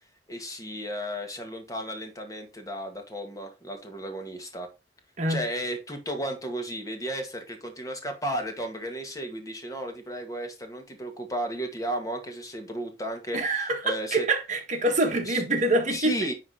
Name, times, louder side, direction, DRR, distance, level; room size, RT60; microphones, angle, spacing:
voice 1, 0.3-4.7 5.3-14.3 15.3-15.4 15.9-16.3, equal, 20° left, 1.9 m, -34 dB
voice 2, 13.3-13.8 14.1-16.1, right 2 dB, 45° right, 1.8 m, -25 dB
10.0 x 3.7 x 4.9 m
head